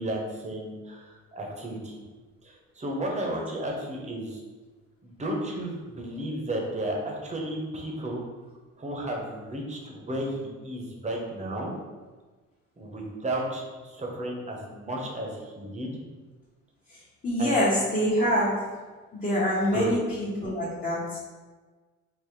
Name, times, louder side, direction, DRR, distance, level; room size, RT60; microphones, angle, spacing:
voice 1, 0.0-1.9 2.4-4.4 5.0-8.2 8.8-11.7 12.8-16.0 17.4-17.6 19.7-19.9, right 1 dB, 25° right, -1 dB, 0.8 m, -33 dB
voice 2, 16.9-18.5 19.1-21.2, equal, 30° left, -9 dB, 1.0 m, -26 dB
3.9 x 2.5 x 3.1 m, 1.4 s
cardioid pair, 90°, 30 cm